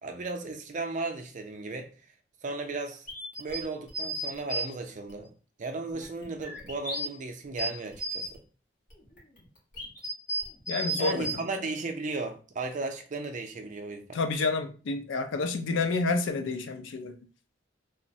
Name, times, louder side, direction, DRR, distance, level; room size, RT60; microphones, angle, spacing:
voice 1, 0.0-1.9 2.4-3.1 3.4-5.3 5.6-8.4 11.0-14.2, right 3 dB, 45° right, 0.4 m, -35 dB
sound 1, 3.1-4.6 5.1-5.2 5.9-7.1 7.5-8.3 8.9-11.3, right 1 dB, 50° left, 1.1 m, -34 dB
voice 2, 10.7-11.3 14.1-17.2, left 3 dB, 90° left, 0.4 m, -29 dB
3.1 x 2.0 x 2.6 m
head